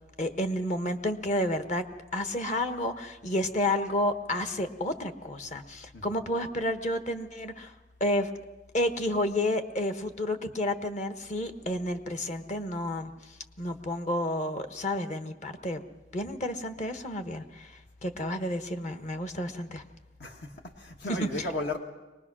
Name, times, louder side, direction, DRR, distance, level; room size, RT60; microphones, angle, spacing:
voice 1, 0.2-1.8 2.1-7.7 8.0-8.3 8.7-15.8 16.1-19.8 21.1-21.5, left 1 dB, 40° left, 8 dB, 1.2 m, -31 dB
voice 2, 20.2-21.8, left 2 dB, 65° left, 3 dB, 1.6 m, -35 dB
23.5 x 20.0 x 6.2 m, 1.1 s
head